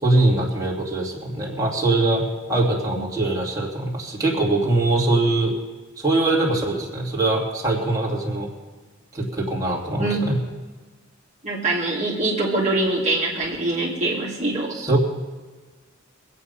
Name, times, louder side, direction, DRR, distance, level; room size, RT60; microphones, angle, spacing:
voice 1, 0.0-5.6 6.0-8.5 9.1-10.4 14.7-15.0, right 2 dB, 15° right, -4 dB, 2.8 m, -22 dB
voice 2, 10.0-10.3 11.4-14.7, right 2 dB, 35° right, -5 dB, 2.5 m, -23 dB
23.5 x 8.7 x 5.6 m, 1.4 s
head